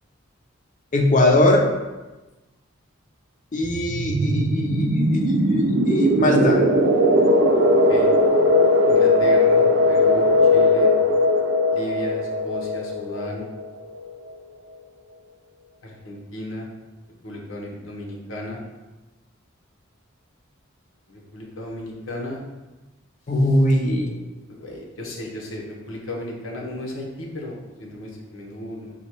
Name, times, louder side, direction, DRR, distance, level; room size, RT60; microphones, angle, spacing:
voice 1, 0.9-1.7 3.5-6.6 23.3-24.1, left 1 dB, 40° left, 2 dB, 0.6 m, -20 dB
sound 1, 3.6-14.1, left 1 dB, 60° right, 0.4 m, -19 dB
voice 2, 7.7-8.1 8.9-10.9 11.7-13.5 15.8-16.7 17.2-18.6 21.1-22.4 24.5-28.9, left 1 dB, 85° left, -2 dB, 0.9 m, -34 dB
4.1 x 2.3 x 4.5 m, 1.1 s
head